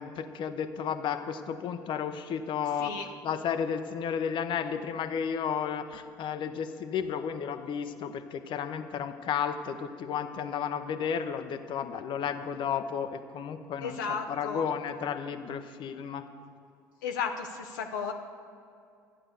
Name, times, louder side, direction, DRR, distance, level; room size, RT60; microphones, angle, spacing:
voice 1, 0.0-3.0 3.2-14.0 14.3-16.2, left 7 dB, 55° left, 9 dB, 0.9 m, -33 dB
voice 2, 13.8-14.6 17.0-18.1, left 6 dB, 80° left, 3 dB, 0.7 m, -34 dB
12.5 x 8.8 x 6.8 m, 2.5 s
hypercardioid pair, 55°, 10 cm